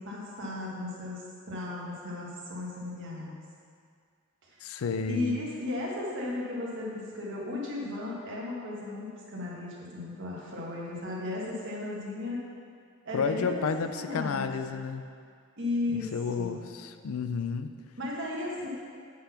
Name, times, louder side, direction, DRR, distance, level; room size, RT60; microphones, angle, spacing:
voice 1, 0.0-3.3 4.5-4.6 5.1-12.4 13.0-13.5 13.9-14.6 15.6-16.1 16.4-16.5 18.0-18.7, left 2 dB, 60° right, -4 dB, 1.7 m, -35 dB
voice 2, 4.6-5.4 13.1-15.0 15.9-17.7, left 5 dB, 80° left, 9 dB, 0.4 m, -31 dB
8.3 x 4.1 x 5.8 m, 2.2 s
head